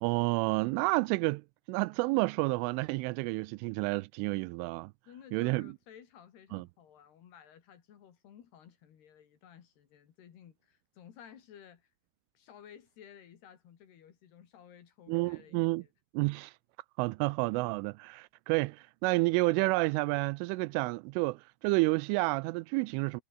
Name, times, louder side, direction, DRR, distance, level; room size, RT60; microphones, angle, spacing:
voice 1, 0.0-4.9 5.3-5.7 6.5-6.7 15.1-15.8 16.1-16.5 17.0-23.2, right 24 dB, 85° right, 3.1 m, -30 dB
voice 2, 5.1-11.9 12.3-15.9, left 9 dB, 60° left, 4.2 m, -55 dB
omnidirectional pair, 5.6 m